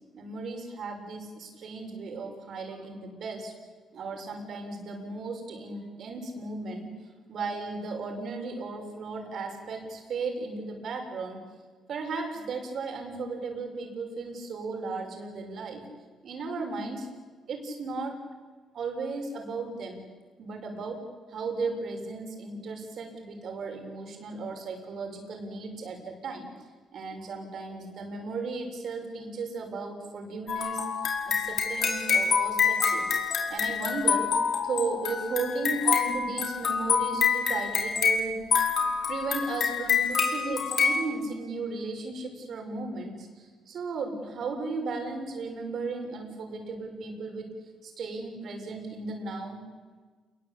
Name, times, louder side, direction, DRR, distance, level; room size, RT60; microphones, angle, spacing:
voice 1, 0.1-3.5 3.9-6.9 7.3-11.4 11.9-15.8 16.2-17.1 17.5-18.2 18.7-20.0 20.4-21.0 21.3-26.5 26.9-30.8 31.2-38.4 38.7-47.4 47.8-49.6, right 3 dB, 60° right, 3 dB, 7.2 m, -35 dB
sound 1, 30.5-41.0, left 6 dB, 60° left, 5.0 m, -26 dB
28.5 x 21.5 x 8.8 m, 1.4 s
cardioid pair, 90°, 0 cm